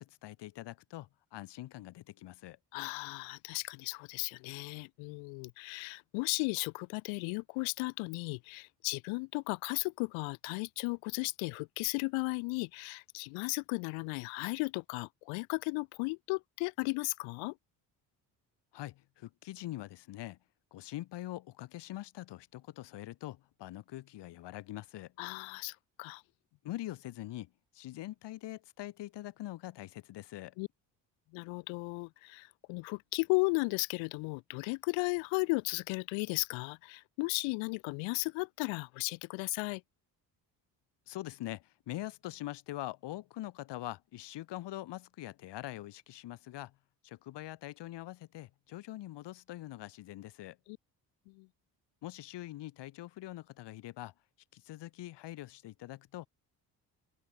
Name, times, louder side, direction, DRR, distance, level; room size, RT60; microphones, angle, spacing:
voice 1, 0.0-2.6 18.7-20.4 20.7-25.1 26.6-30.6 41.1-46.8 47.0-50.6 52.0-54.1 54.5-56.3, left 15 dB, 65° left, 1.0 m, -43 dB
voice 2, 2.7-17.5 25.2-26.2 30.6-30.7 31.3-39.8 50.7-50.8 51.3-51.5, left 30 dB, 85° left, 1.5 m, -35 dB
supercardioid pair, 60°, 46 cm